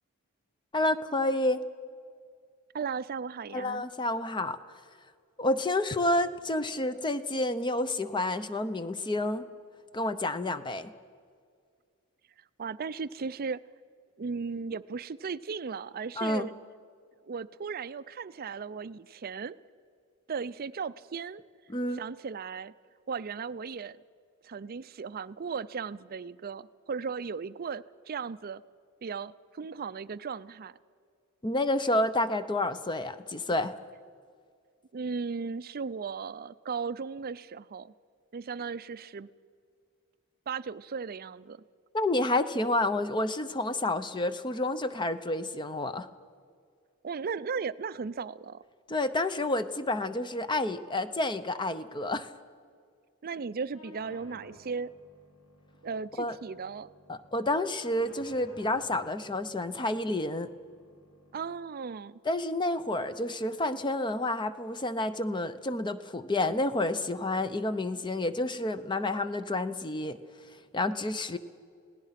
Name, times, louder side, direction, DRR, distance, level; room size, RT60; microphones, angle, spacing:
voice 1, 0.7-1.6 3.5-4.6 5.4-9.4 9.9-10.9 16.2-16.5 21.7-22.0 31.4-33.7 41.9-46.1 48.9-52.3 56.2-56.3 57.1-60.5 62.2-70.2 70.7-71.4, left 2 dB, 20° left, 12 dB, 0.7 m, -29 dB
voice 2, 2.7-3.8 12.6-13.6 14.2-16.5 17.3-19.6 20.3-21.4 21.9-22.7 23.1-24.0 24.4-28.6 29.0-30.7 34.9-37.9 38.3-39.3 40.5-41.6 47.0-48.6 53.2-54.9 55.8-56.9 61.3-62.2, right 5 dB, 40° right, 16 dB, 0.5 m, -36 dB
sound 1, 53.7-61.7, left 1 dB, 75° left, 2.9 m, -56 dB
27.0 x 17.5 x 5.8 m, 2.1 s
head